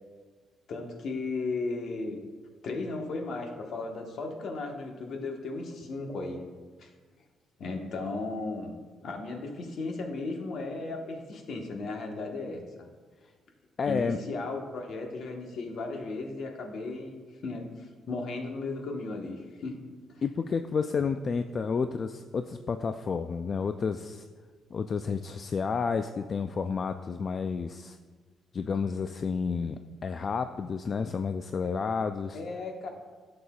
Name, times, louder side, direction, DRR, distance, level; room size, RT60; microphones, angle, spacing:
voice 1, 0.7-2.2 2.6-6.4 6.8-6.9 7.6-8.8 9.0-12.8 13.9-19.8 20.1-20.2 32.3-32.9, left 3 dB, 65° left, 2 dB, 1.2 m, -35 dB
voice 2, 13.8-14.2 20.2-24.3 24.7-28.0 28.5-32.4, left 5 dB, 45° left, 8 dB, 0.3 m, -30 dB
11.0 x 6.7 x 2.4 m, 1.4 s
cardioid pair, 90°, 0 cm